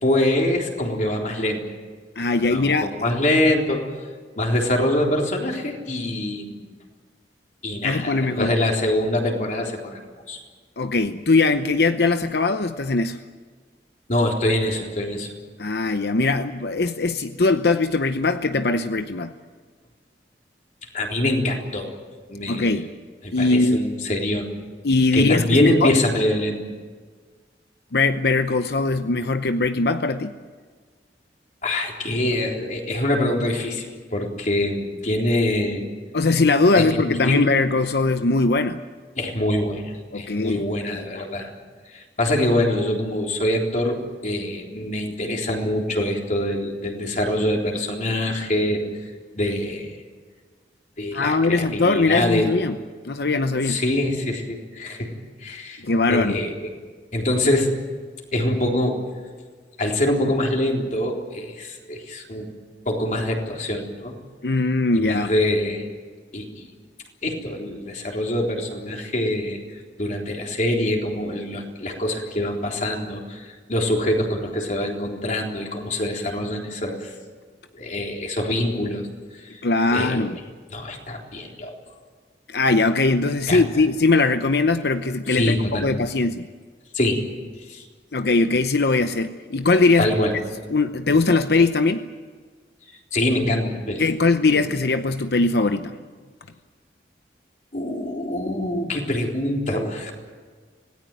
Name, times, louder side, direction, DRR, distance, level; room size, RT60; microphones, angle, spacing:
voice 1, 0.0-1.6 2.4-3.9 4.4-6.7 7.6-10.0 10.3-10.4 14.1-15.3 20.9-21.9 22.3-22.8 23.2-24.5 25.1-26.7 31.6-35.8 36.7-37.5 39.2-41.5 41.9-48.8 49.3-50.0 51.0-52.5 53.7-55.1 55.4-55.8 56.1-56.5 57.1-57.7 58.3-59.0 59.8-62.5 62.9-64.1 65.0-65.8 66.3-66.7 67.2-69.6 70.0-77.1 77.7-79.0 79.4-79.6 79.9-80.2 80.7-81.7 83.5-83.6 85.3-85.9 86.9-87.2 87.7-87.8 90.0-90.3 93.1-94.0 94.5-94.6 97.7-100.1, left 1 dB, 45° left, 0 dB, 3.8 m, -24 dB
voice 2, 2.2-2.9 7.8-8.5 10.8-13.2 15.6-19.3 22.5-22.9 23.3-23.8 24.8-25.9 27.9-30.3 36.1-38.8 40.1-40.6 40.9-41.1 51.1-52.8 53.0-53.8 55.8-56.4 64.4-65.3 79.6-80.4 82.5-86.5 88.1-90.1 90.7-92.0 94.0-96.0, left 3 dB, 65° left, 9 dB, 0.8 m, -20 dB
26.0 x 18.0 x 9.1 m, 1.5 s
head